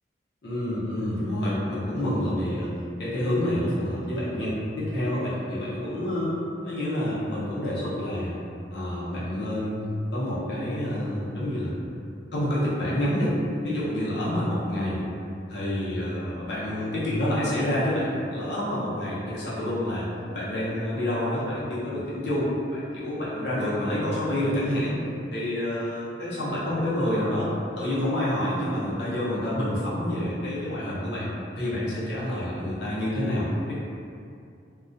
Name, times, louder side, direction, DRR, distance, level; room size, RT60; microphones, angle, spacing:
voice 1, 0.4-2.7 3.0-6.4 6.6-8.4 8.7-9.8 10.1-11.7 12.3-13.4 13.6-15.0 15.5-20.1 20.3-25.0 25.3-27.5 27.8-31.3 31.6-33.7, left 1 dB, 65° left, -9 dB, 0.7 m, -28 dB
2.3 x 2.1 x 2.5 m, 2.5 s
head